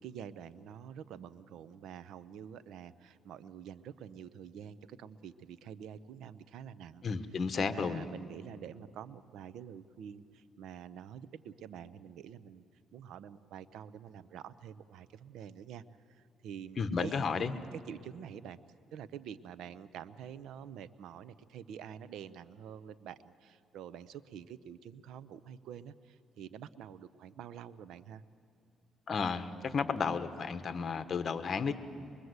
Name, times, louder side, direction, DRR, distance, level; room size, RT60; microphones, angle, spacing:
voice 1, 0.0-7.1 7.6-12.6 12.9-15.8 16.1-17.5 17.9-18.6 18.9-28.2, right 8 dB, 80° right, 16 dB, 0.7 m, -47 dB
voice 2, 7.0-8.1 16.8-17.5 29.1-31.7, left 5 dB, 45° left, 10 dB, 1.3 m, -33 dB
23.5 x 22.5 x 8.1 m, 2.5 s
cardioid pair, 90°, 0 cm